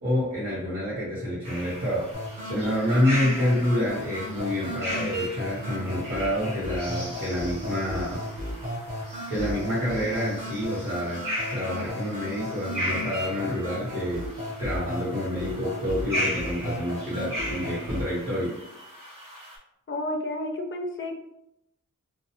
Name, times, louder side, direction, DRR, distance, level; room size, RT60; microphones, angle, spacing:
voice 1, 0.0-2.1 2.5-8.2 9.3-14.2 14.6-18.6, left 1 dB, 50° right, -7 dB, 1.1 m, -28 dB
sound 1, 1.4-19.6, equal, 80° right, 0.9 m, -37 dB
sound 2, 2.1-18.1, equal, 25° right, 0.9 m, -35 dB
voice 2, 19.9-21.1, left 1 dB, 40° left, 3 dB, 0.5 m, -31 dB
2.4 x 2.3 x 2.8 m, 0.82 s
wide cardioid pair, 75°, 32 cm